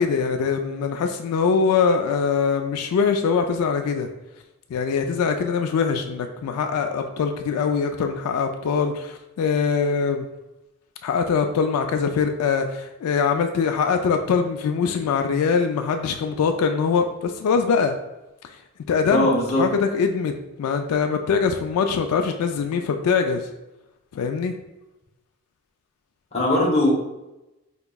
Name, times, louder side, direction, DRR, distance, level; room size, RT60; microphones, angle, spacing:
voice 1, 0.0-4.1 4.7-10.3 11.0-18.0 18.4-18.6 18.9-23.5 24.1-24.5, left 5 dB, 85° left, 9 dB, 0.3 m, -23 dB
voice 2, 19.1-19.6 26.3-26.9, left 1 dB, 30° left, -4 dB, 0.8 m, -20 dB
4.4 x 2.9 x 2.3 m, 0.98 s
head